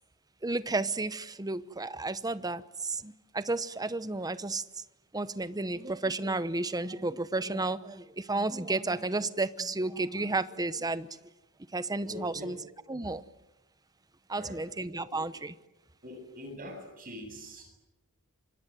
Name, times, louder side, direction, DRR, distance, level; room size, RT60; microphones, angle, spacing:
voice 1, 0.4-4.6 5.1-11.1 11.7-12.6 12.9-13.2 14.3-15.5, right 2 dB, 15° right, 0.9 m, -32 dB
voice 2, 12.0-12.5 14.3-14.6 15.1-15.2 16.0-17.7, left 1 dB, 40° right, 7.8 m, -44 dB
29.0 x 25.5 x 7.7 m
head